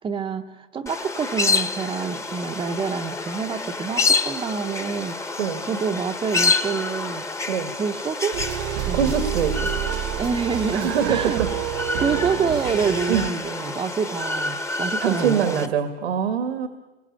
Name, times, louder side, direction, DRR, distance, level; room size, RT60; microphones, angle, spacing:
voice 1, 0.0-5.4 5.6-7.3 7.7-8.4 8.9-9.1 10.2-11.4 12.0-15.7, right 6 dB, 15° right, 0 dB, 0.8 m, -27 dB
sound 1, 0.9-15.7, left 3 dB, 10° left, 1.1 m, -28 dB
sound 2, 8.3-13.3, right 14 dB, 55° right, 1.1 m, -29 dB
voice 2, 8.9-9.6 10.7-11.5 13.1-13.3 15.0-16.7, right 8 dB, 90° right, 8 dB, 2.1 m, -23 dB
26.5 x 22.0 x 8.9 m, 1.1 s
supercardioid pair, 140°, 31 cm